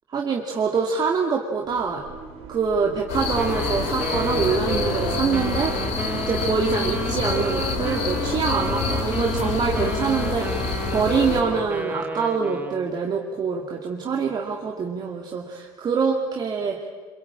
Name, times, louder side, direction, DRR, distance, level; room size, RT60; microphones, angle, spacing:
voice 1, 0.1-2.0 2.5-5.8 6.2-16.8, right 5 dB, 35° right, 0 dB, 2.5 m, -25 dB
sound 1, 1.6-9.4, right 3 dB, 65° right, 3.4 m, -41 dB
sound 2, 3.1-11.4, left 5 dB, 75° left, 5.1 m, -27 dB
Wind instrument woodwind instrument, 3.3-12.9, right 3 dB, 15° right, 1.9 m, -32 dB
27.0 x 24.0 x 8.7 m, 1.5 s
cardioid pair, 115°, 11 cm